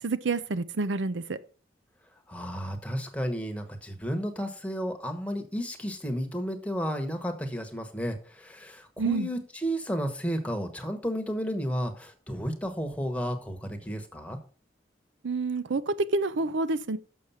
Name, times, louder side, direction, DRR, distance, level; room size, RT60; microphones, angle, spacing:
voice 1, 0.0-1.4 9.0-9.3 15.2-17.0, right 3 dB, 90° right, 0.6 m, -28 dB
voice 2, 2.3-14.4, equal, 10° left, 1.2 m, -32 dB
7.0 x 6.5 x 5.6 m
head